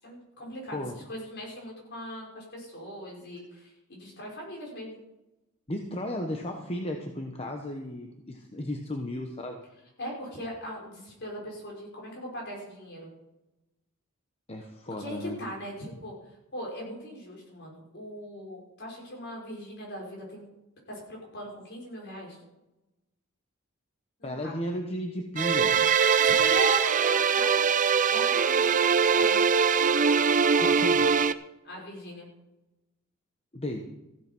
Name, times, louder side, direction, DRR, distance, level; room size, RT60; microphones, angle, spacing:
voice 1, 0.0-5.0 10.0-13.1 15.0-16.1 16.5-20.5 20.9-22.4 24.2-24.5 26.2-27.7 28.1-29.4 31.6-32.3, equal, 55° left, -2 dB, 6.0 m, -39 dB
voice 2, 5.7-9.6 14.5-15.4 24.2-25.8 30.6-31.2 33.5-33.9, left 1 dB, 30° left, 3 dB, 1.1 m, -34 dB
sound 1, 25.4-31.3, right 6 dB, 35° right, 0.5 m, -22 dB
15.0 x 8.9 x 6.1 m, 0.96 s
head